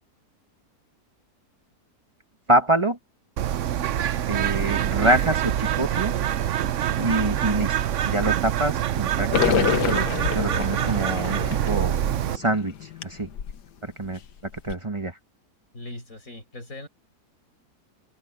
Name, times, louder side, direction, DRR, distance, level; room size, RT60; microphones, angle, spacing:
voice 1, 2.5-3.0 4.3-6.1 6.9-7.7 8.0-10.1 10.3-12.0 12.3-13.3 13.8-14.2 14.6-15.2, right 1 dB, 20° right, 1.2 m, -25 dB
Bird, 3.4-12.4, right 11 dB, 60° right, 0.9 m, -25 dB
sound 1, 9.3-13.6 14.0-14.1 14.5-14.7, left 9 dB, 80° left, 1.7 m, -27 dB
voice 2, 15.7-16.9, left 2 dB, 50° left, 7.2 m, -39 dB
open air
omnidirectional pair, 1.7 m